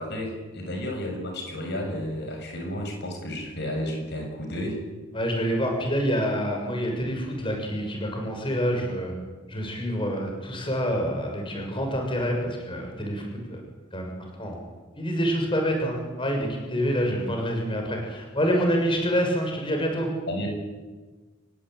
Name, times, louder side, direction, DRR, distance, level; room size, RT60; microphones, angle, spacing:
voice 1, 0.0-4.8 20.3-20.5, left 1 dB, 55° left, 3 dB, 7.1 m, -32 dB
voice 2, 5.1-9.1 9.5-13.2 13.5-13.6 13.9-14.6 15.0-20.1, equal, 25° left, 2 dB, 6.7 m, -27 dB
27.0 x 23.0 x 9.3 m, 1.3 s
head